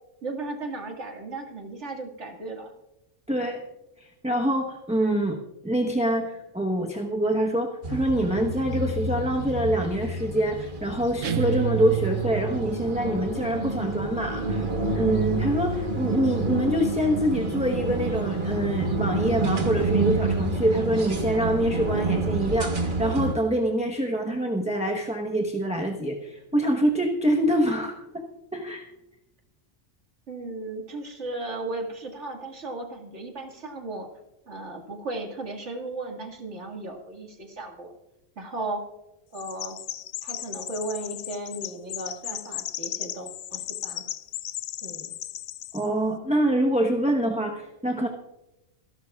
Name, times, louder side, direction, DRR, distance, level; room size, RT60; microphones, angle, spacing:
voice 1, 0.2-2.7 30.3-34.1 34.5-37.9 38.4-38.8 39.3-39.8 40.2-44.0 44.8-45.2, right 2 dB, 65° right, 2 dB, 2.3 m, -35 dB
voice 2, 3.3-3.6 4.0-14.7 14.9-28.2 28.5-28.9 45.7-48.1, right 1 dB, 5° right, 1 dB, 0.9 m, -25 dB
sound 1, 7.8-23.3, right 2 dB, 40° right, 1.4 m, -28 dB
sound 2, 11.2-12.9, right 11 dB, 85° right, 1.1 m, -29 dB
Chirp tweet, 39.3-45.9, left 12 dB, 75° left, 0.9 m, -36 dB
27.0 x 11.5 x 2.4 m, 0.97 s
omnidirectional pair, 1.3 m